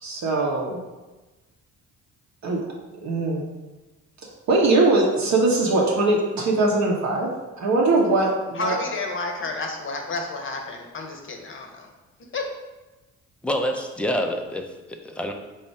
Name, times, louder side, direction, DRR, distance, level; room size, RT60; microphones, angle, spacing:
voice 1, 0.0-0.8 2.4-2.6 3.0-3.5 4.5-7.3 7.6-8.8, right 2 dB, 45° right, -2 dB, 0.8 m, -21 dB
voice 2, 8.5-11.9 12.3-12.4, left 3 dB, 30° left, 3 dB, 0.8 m, -30 dB
voice 3, 13.4-15.3, equal, 5° left, 4 dB, 0.4 m, -27 dB
4.3 x 2.1 x 4.6 m, 1.1 s
figure-of-eight pair, 45°, 40 cm